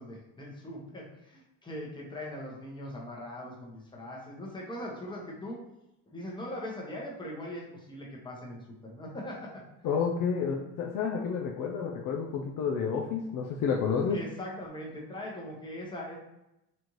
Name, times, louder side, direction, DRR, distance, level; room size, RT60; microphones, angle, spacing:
voice 1, 0.0-5.6 6.1-9.6 14.1-16.2, left 1 dB, 10° left, -3 dB, 0.9 m, -41 dB
voice 2, 9.8-14.2, left 6 dB, 55° left, 0 dB, 0.5 m, -30 dB
4.2 x 2.6 x 3.1 m, 0.90 s
cardioid pair, 110°, 39 cm